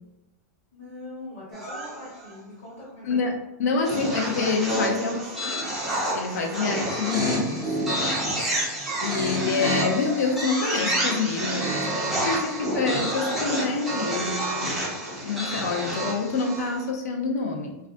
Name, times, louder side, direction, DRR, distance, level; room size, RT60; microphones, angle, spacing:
voice 1, 0.7-3.4 5.0-5.8 8.4-8.9 11.7-13.0, left 1 dB, 45° left, -8 dB, 1.1 m, -43 dB
sound 1, 1.5-2.3 3.9-16.8, right 1 dB, ahead, 0.3 m, -28 dB
voice 2, 3.0-5.2 6.1-7.8 9.0-11.7 12.2-17.8, left 4 dB, 85° left, 2 dB, 0.5 m, -27 dB
2.4 x 2.1 x 2.5 m, 0.94 s
supercardioid pair, 180°, 9 cm